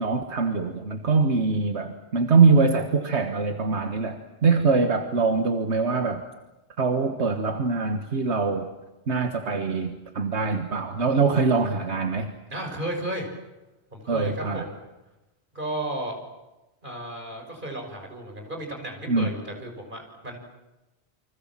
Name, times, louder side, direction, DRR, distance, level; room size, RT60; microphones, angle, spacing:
voice 1, 0.0-6.2 6.8-8.7 9.1-12.3 14.1-14.7 19.1-19.3, right 4 dB, 75° right, 6 dB, 1.8 m, -23 dB
voice 2, 12.5-13.3 13.9-14.8 15.5-16.2 16.8-20.4, right 1 dB, 45° right, 2 dB, 6.4 m, -34 dB
29.5 x 25.0 x 7.5 m, 1.0 s
omnidirectional pair, 1.1 m